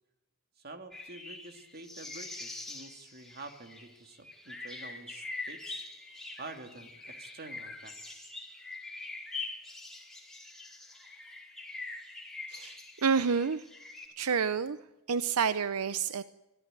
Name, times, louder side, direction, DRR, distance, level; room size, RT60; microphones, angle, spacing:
voice 1, 0.6-5.9 6.4-8.3, right 3 dB, 45° right, 5 dB, 2.5 m, -48 dB
sound 1, 0.9-14.1, left 3 dB, ahead, 4.6 m, -44 dB
voice 2, 12.5-13.7 14.2-14.8 15.1-16.2, right 6 dB, 85° right, 13 dB, 0.7 m, -29 dB
25.0 x 15.0 x 9.0 m, 1.0 s
head